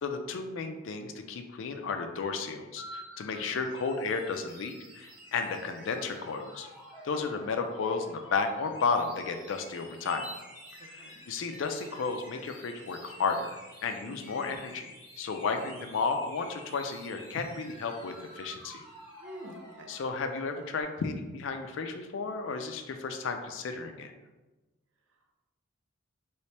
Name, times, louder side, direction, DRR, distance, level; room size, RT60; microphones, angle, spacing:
voice 1, 0.0-6.7 7.0-10.2 10.9-13.6 13.8-14.9 15.2-18.8 19.9-24.1, left 4 dB, 70° left, 6 dB, 0.4 m, -33 dB
sound 1, 2.8-20.8, equal, 20° right, 1.3 m, -49 dB
voice 2, 3.3-3.6 11.0-11.2 14.0-14.4 19.2-19.9, equal, 70° right, 3 dB, 0.5 m, -48 dB
3.1 x 2.9 x 3.2 m, 1.1 s
head